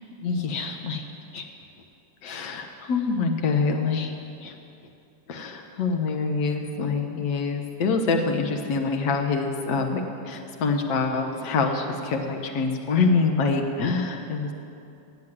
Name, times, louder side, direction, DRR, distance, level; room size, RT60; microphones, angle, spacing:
voice 1, 0.1-1.0 1.3-1.5 2.2-4.1 4.4-4.5 5.3-14.5, left 4 dB, 45° left, 3 dB, 0.9 m, -25 dB
9.2 x 7.5 x 7.7 m, 2.6 s
figure-of-eight pair, 90°, 0 cm